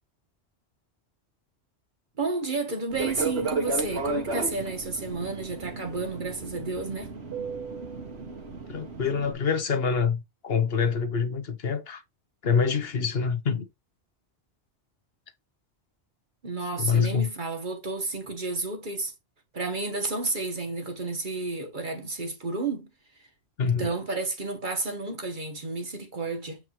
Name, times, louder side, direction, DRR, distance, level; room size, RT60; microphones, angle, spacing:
voice 1, 2.2-7.1 16.4-19.1 19.5-22.9 23.6-26.6, right 3 dB, 45° right, 1.6 m, -31 dB
Fixed-wing aircraft airplane, 2.9-9.3, right 3 dB, 70° right, 1.9 m, -33 dB
voice 2, 8.7-12.0 12.4-13.6 16.8-17.3 23.6-23.9, left 6 dB, 60° left, 1.2 m, -26 dB
7.5 x 4.8 x 3.1 m
omnidirectional pair, 1.1 m